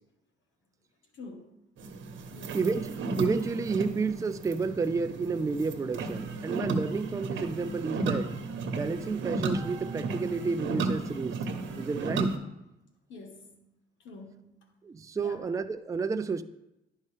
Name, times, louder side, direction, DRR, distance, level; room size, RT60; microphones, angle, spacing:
voice 1, 1.1-1.5 2.3-2.7 13.1-13.6 14.0-14.6 15.2-15.4, left 3 dB, 75° left, 4 dB, 1.4 m, -46 dB
sound 1, 1.8-12.4, right 3 dB, 70° right, 1.0 m, -34 dB
voice 2, 2.5-8.3 8.7-11.4 11.8-12.4 14.8-16.4, right 4 dB, 15° right, 10 dB, 0.4 m, -31 dB
10.5 x 5.4 x 3.3 m, 0.90 s
cardioid pair, 90°, 20 cm